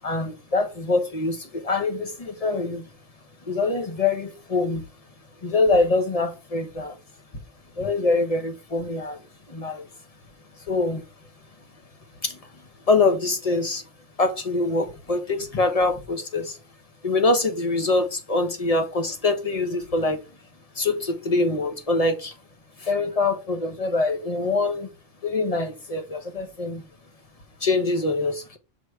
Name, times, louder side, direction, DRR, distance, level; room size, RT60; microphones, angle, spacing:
voice 1, 0.0-2.8 3.4-4.8 5.4-7.0 7.8-9.2 9.5-9.9 10.7-11.1 12.2-12.4 12.9-13.8 14.2-16.6 17.0-20.2 20.7-22.3 22.8-24.9 25.2-26.8 27.6-28.6, left 3 dB, 30° left, 1.0 m, -24 dB
6.5 x 3.3 x 4.7 m
omnidirectional pair, 1.4 m